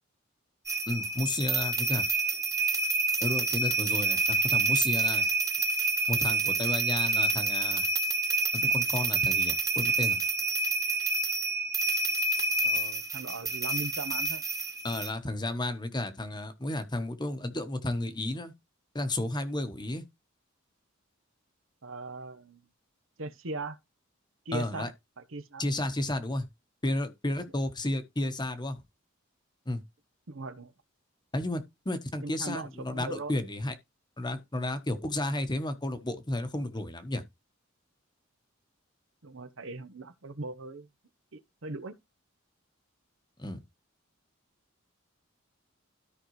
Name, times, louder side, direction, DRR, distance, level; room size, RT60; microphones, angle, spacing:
sound 1, 0.7-15.1, right 3 dB, 15° right, 1.1 m, -28 dB
voice 1, 0.9-2.1 3.2-5.3 6.1-7.9 8.5-10.2 14.8-18.5 18.9-20.0 24.5-24.9 25.6-26.5 26.8-28.8 29.7-29.8 31.3-33.7 34.2-37.2 43.4-43.6, left 1 dB, 20° left, 1.0 m, -32 dB
voice 2, 12.6-14.5 21.8-22.7 23.2-23.8 24.4-24.9 25.2-25.7 30.3-30.7 32.2-33.3 39.2-40.9 41.3-42.0, right 2 dB, 70° right, 0.9 m, -39 dB
13.0 x 5.2 x 3.1 m
head